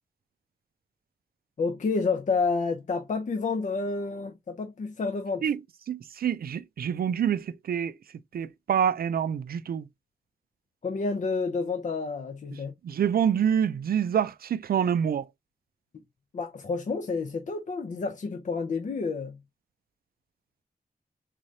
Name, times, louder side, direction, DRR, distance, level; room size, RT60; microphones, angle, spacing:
voice 1, 1.6-5.5 10.8-12.7 16.3-19.4, left 4 dB, 55° left, 0.5 m, -29 dB
voice 2, 5.9-7.9 8.3-9.9 12.8-15.2, right 8 dB, 85° right, 0.4 m, -26 dB
3.7 x 3.2 x 2.6 m
wide cardioid pair, 95°, 15 cm